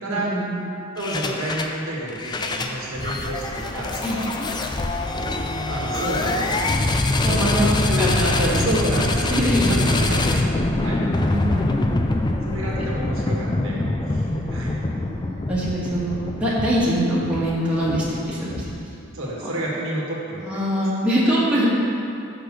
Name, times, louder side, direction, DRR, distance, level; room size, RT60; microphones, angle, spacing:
voice 1, 0.1-0.7 4.0-4.2 7.2-9.0 9.3-10.4 11.3-12.1 12.6-12.7 13.3-14.1 14.8-18.7 19.2-19.5 20.4-21.7, equal, 5° right, -9 dB, 1.6 m, -24 dB
voice 2, 0.9-4.3 5.7-6.8 7.2-7.5 7.9-9.4 9.7-11.0 12.4-14.7 19.1-20.6, right 1 dB, 70° right, -4 dB, 1.4 m, -29 dB
sound 1, 1.0-1.8 2.1-19.0, left 2 dB, 20° left, 0.4 m, -24 dB
6.2 x 5.0 x 6.1 m, 2.7 s
head